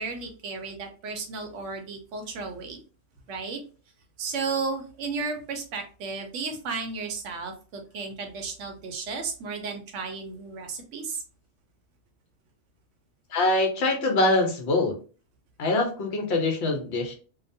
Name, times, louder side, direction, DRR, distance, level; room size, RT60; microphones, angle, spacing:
voice 1, 0.0-2.8 3.3-3.6 4.2-11.2, right 4 dB, 85° right, 4 dB, 1.0 m, -33 dB
voice 2, 13.3-15.0 15.6-17.1, left 2 dB, 65° left, 3 dB, 1.0 m, -24 dB
2.8 x 2.1 x 2.6 m, 0.37 s
omnidirectional pair, 1.2 m